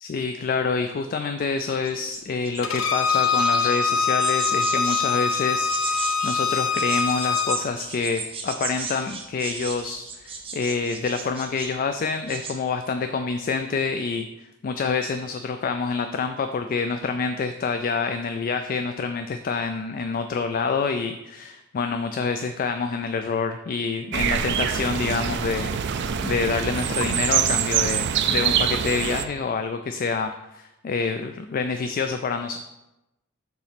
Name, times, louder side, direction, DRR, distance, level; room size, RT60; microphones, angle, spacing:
voice 1, 0.0-32.6, left 4 dB, 45° left, 7 dB, 0.3 m, -27 dB
sound 1, 1.8-3.7 4.2-5.0 5.3-11.8 12.1-12.5, right 4 dB, 30° right, 0.8 m, -34 dB
Bowed string instrument, 2.6-7.6, left 5 dB, 70° left, 0.7 m, -23 dB
sound 2, 24.1-29.2, right 8 dB, 60° right, 0.4 m, -24 dB
6.9 x 3.0 x 5.8 m, 0.93 s
head